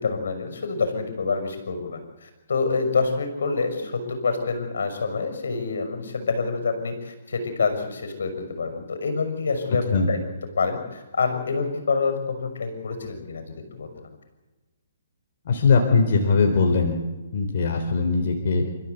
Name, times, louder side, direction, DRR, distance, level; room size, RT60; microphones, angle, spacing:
voice 1, 0.0-10.2 10.6-14.2, left 4 dB, 75° left, 7 dB, 6.3 m, -27 dB
voice 2, 15.5-17.0 17.3-18.6, left 4 dB, 55° left, 2 dB, 4.1 m, -20 dB
28.5 x 15.0 x 8.3 m, 1.2 s
hypercardioid pair, 155°, 0 cm